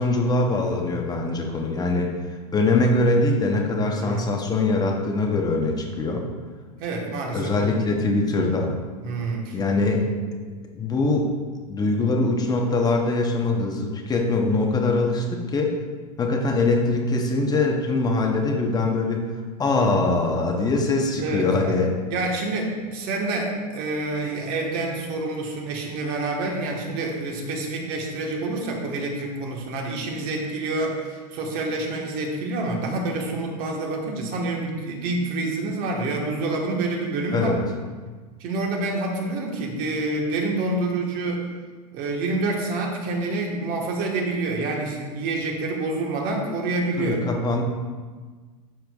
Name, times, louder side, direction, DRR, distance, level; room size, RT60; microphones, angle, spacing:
voice 1, 0.0-2.1 2.5-6.3 7.3-8.7 9.5-10.0 10.7-11.3 11.7-15.8 16.2-19.3 19.6-21.9 37.3-37.6 47.0-47.6, left 2 dB, 20° left, 1 dB, 0.9 m, -22 dB
voice 2, 3.9-4.3 6.8-7.7 9.0-9.6 21.2-21.8 22.1-37.6 38.4-41.5 41.9-47.2, right 2 dB, 50° right, 0 dB, 1.4 m, -27 dB
12.0 x 4.4 x 2.4 m, 1.4 s
supercardioid pair, 120°, 19 cm